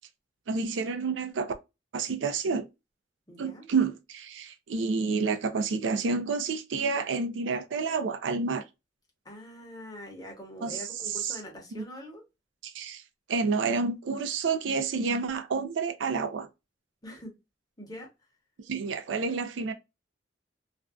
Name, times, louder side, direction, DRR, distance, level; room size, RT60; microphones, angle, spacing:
voice 1, 0.5-1.5 1.9-2.7 3.4-8.6 10.6-11.4 11.7-11.8 12.6-13.0 13.3-16.5 18.7-19.7, right 4 dB, 90° right, 0.4 m, -29 dB
voice 2, 3.3-3.6 9.2-12.2 17.0-17.3 17.8-18.1, left 1 dB, 20° left, 0.9 m, -43 dB
2.5 x 2.2 x 2.2 m
head